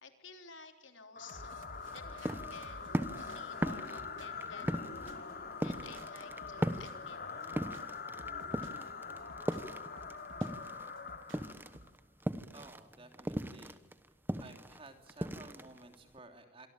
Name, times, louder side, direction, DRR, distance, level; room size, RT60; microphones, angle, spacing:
voice 1, 0.0-4.7 5.6-7.2, left 5 dB, 70° left, 6 dB, 3.5 m, -53 dB
sound 1, 1.2-11.9, left 5 dB, 50° left, 3.7 m, -44 dB
sound 2, 1.3-5.3 5.6-7.1 7.4-8.9 9.2-10.6 11.0-12.0, right 1 dB, 80° right, 3.0 m, -54 dB
sound 3, 1.9-10.9 11.2-16.2, equal, 10° right, 1.1 m, -38 dB
voice 2, 12.5-13.8 14.4-16.7, right 2 dB, 30° right, 5 dB, 3.1 m, -54 dB
27.0 x 23.5 x 9.0 m, 1.1 s
head